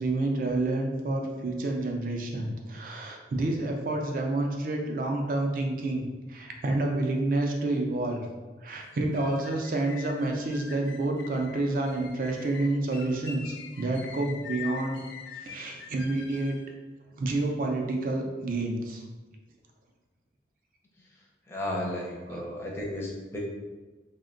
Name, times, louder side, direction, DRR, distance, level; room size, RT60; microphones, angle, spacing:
voice 1, 0.0-8.3 8.6-15.0 15.4-16.6 17.2-19.0 22.3-22.4, right 2 dB, 50° right, 2 dB, 0.4 m, -29 dB
sound 1, 8.8-16.7, left 7 dB, 80° left, 0.4 m, -44 dB
voice 2, 21.5-23.4, left 1 dB, 15° left, -2 dB, 0.5 m, -34 dB
2.8 x 2.1 x 3.7 m, 1.3 s
head